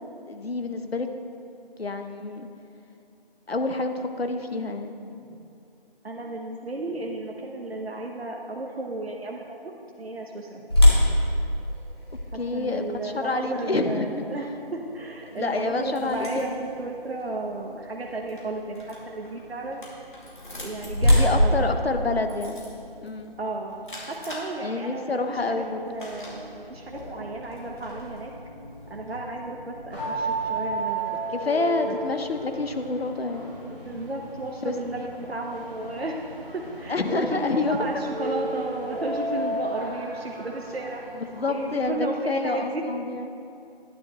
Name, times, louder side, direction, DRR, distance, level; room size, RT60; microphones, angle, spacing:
voice 1, 0.3-1.1 1.8-2.5 3.5-5.0 5.3-5.5 12.3-14.3 15.3-16.5 21.2-22.6 23.0-23.3 24.6-25.8 31.3-33.8 34.6-34.7 36.9-37.8 41.1-43.4, left 3 dB, 80° left, 6 dB, 1.0 m, -28 dB
voice 2, 6.0-9.6 10.0-10.6 12.3-19.9 20.6-21.7 23.4-23.8 24.0-28.3 28.9-31.2 31.8-32.0 33.7-36.2 36.5-41.0 41.5-42.8, right 2 dB, 85° right, 0 dB, 1.1 m, -33 dB
sound 1, 10.7-16.6 17.2-17.3 17.9-18.1 20.2-22.9, left 1 dB, 25° left, 1.7 m, -24 dB
sound 2, 15.3-30.7, left 1 dB, 55° left, 2.5 m, -45 dB
sound 3, 29.9-41.8, right 2 dB, 10° right, 2.1 m, -34 dB
12.0 x 10.5 x 3.0 m, 2.6 s
figure-of-eight pair, 175°, 30 cm